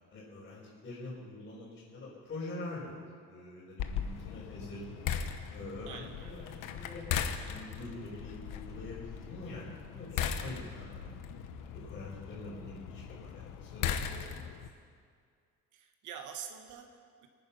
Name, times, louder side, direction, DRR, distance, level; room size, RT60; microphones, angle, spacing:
voice 1, 0.1-3.0 3.3-5.0 5.5-7.0 7.4-11.2 11.4-14.2, left 2 dB, 35° left, -10 dB, 4.9 m, -45 dB
sound 1, 3.8-14.7, left 8 dB, 80° left, 1.1 m, -38 dB
voice 2, 5.9-6.5 15.7-17.3, right 8 dB, 70° right, 5 dB, 1.3 m, -46 dB
24.0 x 9.7 x 5.7 m, 2.1 s
cardioid pair, 175°, 32 cm